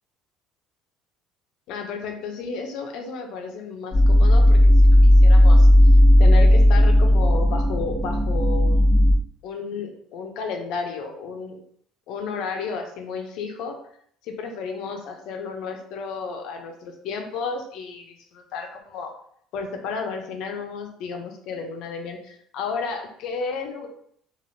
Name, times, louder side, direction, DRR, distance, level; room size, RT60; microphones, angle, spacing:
voice 1, 1.7-5.7 6.2-8.9 9.4-11.6 12.1-13.8 14.2-19.1 19.5-23.9, left 5 dB, 60° left, 4 dB, 0.5 m, -32 dB
sound 1, 3.9-9.1, left 1 dB, 20° right, 1.1 m, -14 dB
3.2 x 2.4 x 2.6 m, 0.64 s
cardioid pair, 175°, 0 cm